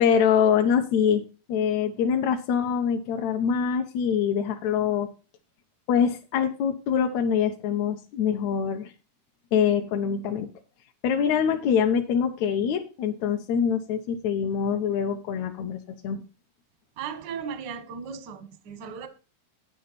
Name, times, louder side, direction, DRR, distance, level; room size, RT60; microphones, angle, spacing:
voice 1, 0.0-5.1 5.9-8.9 9.5-10.5 11.0-16.2, left 7 dB, 70° left, 1.8 m, -24 dB
voice 2, 17.0-19.1, right 6 dB, 70° right, 1.0 m, -36 dB
9.8 x 8.8 x 4.1 m
omnidirectional pair, 3.9 m